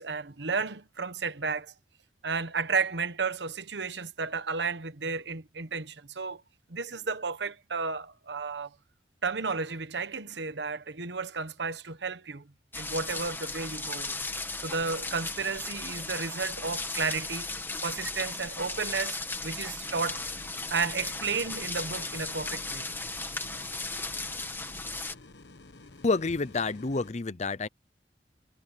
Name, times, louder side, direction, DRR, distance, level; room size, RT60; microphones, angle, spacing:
voice 1, 0.0-1.7 2.2-6.4 6.7-8.7 9.2-12.4 12.8-14.2 14.6-17.5 17.8-20.2 20.7-22.9 23.5-23.6, right 4 dB, 75° right, 1.2 m, -33 dB
sound 1, 12.7-25.1, left 3 dB, 10° left, 1.8 m, -36 dB
sound 2, 19.8-27.1, left 2 dB, 75° left, 1.2 m, -51 dB
voice 2, 26.0-27.7, left 3 dB, 40° left, 0.7 m, -28 dB
head